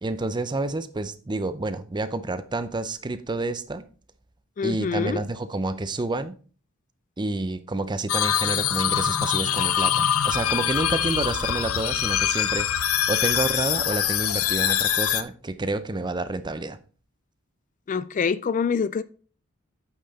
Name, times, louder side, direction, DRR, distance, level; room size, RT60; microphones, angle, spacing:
voice 1, 0.0-3.8 4.6-6.4 7.2-16.8, right 2 dB, 20° right, 0.6 m, -29 dB
voice 2, 4.6-5.2 17.9-19.0, left 6 dB, 40° left, 0.3 m, -25 dB
sound 1, 8.1-15.2, left 10 dB, 85° left, 0.6 m, -24 dB
8.7 x 5.7 x 4.1 m
head